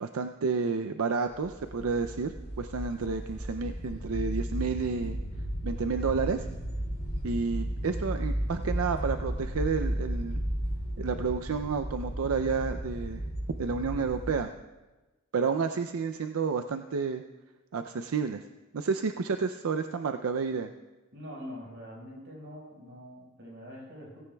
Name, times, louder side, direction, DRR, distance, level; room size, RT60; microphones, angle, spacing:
voice 1, 0.0-5.2 5.6-6.4 7.2-10.4 11.0-13.2 13.6-14.5 15.3-17.2 17.7-18.4 18.7-20.7, right 5 dB, 85° right, 7 dB, 0.5 m, -30 dB
sound 1, 1.3-14.3, equal, 40° left, 2.5 m, -34 dB
voice 2, 21.1-24.2, equal, 55° right, -2 dB, 4.9 m, -44 dB
17.0 x 16.0 x 2.3 m, 1.1 s
head